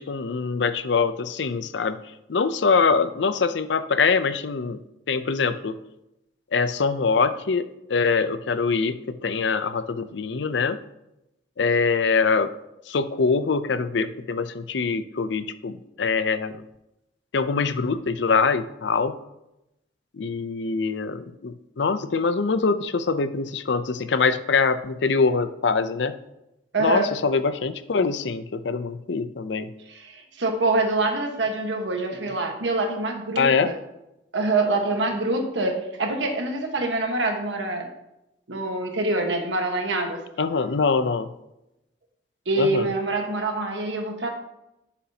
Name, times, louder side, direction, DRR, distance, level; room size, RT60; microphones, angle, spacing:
voice 1, 0.0-2.0 2.3-4.8 5.1-5.8 6.5-10.8 11.6-12.5 12.9-16.6 17.3-19.2 20.1-26.2 26.8-29.7 33.4-33.7 40.4-41.3 42.6-42.9, left 4 dB, 75° left, 12 dB, 0.5 m, -24 dB
voice 2, 26.7-27.1 29.9-33.8 34.3-37.9 38.5-40.2 42.5-44.3, right 2 dB, 85° right, 3 dB, 1.4 m, -25 dB
11.0 x 7.2 x 2.9 m, 0.89 s
head